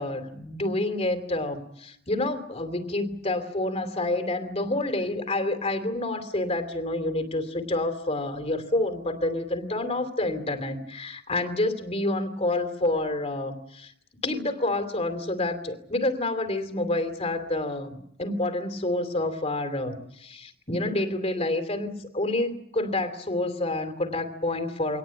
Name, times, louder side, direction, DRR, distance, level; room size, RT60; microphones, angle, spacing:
voice 1, 0.0-13.9 14.2-25.0, left 2 dB, 30° left, 8 dB, 2.9 m, -28 dB
24.0 x 19.0 x 8.9 m, 0.73 s
head